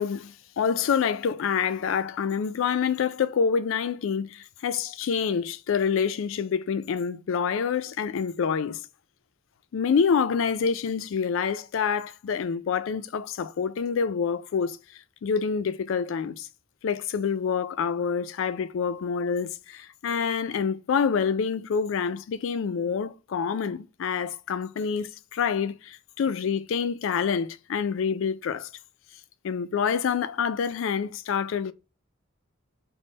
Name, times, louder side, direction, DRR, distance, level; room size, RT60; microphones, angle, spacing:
voice 1, 0.0-8.8 9.7-14.8 15.2-16.5 16.8-28.7 29.4-31.7, left 6 dB, 65° left, 0.3 m, -27 dB
3.5 x 2.0 x 3.7 m
head